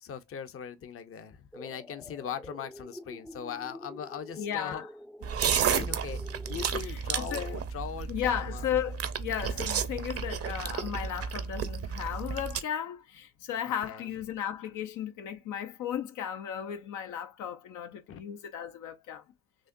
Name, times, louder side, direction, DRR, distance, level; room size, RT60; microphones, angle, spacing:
voice 1, 0.0-4.8 5.4-6.2 6.5-8.7 13.6-14.1 18.1-18.2, left 8 dB, 45° left, 0.7 m, -40 dB
sound 1, 1.5-6.8, equal, 5° left, 0.4 m, -47 dB
voice 2, 4.4-4.9 6.8-7.5 8.1-19.2, left 9 dB, 80° left, 0.7 m, -35 dB
sound 2, 5.2-12.6, right 7 dB, 50° right, 0.7 m, -32 dB
6.2 x 2.2 x 2.5 m
cardioid pair, 90°, 30 cm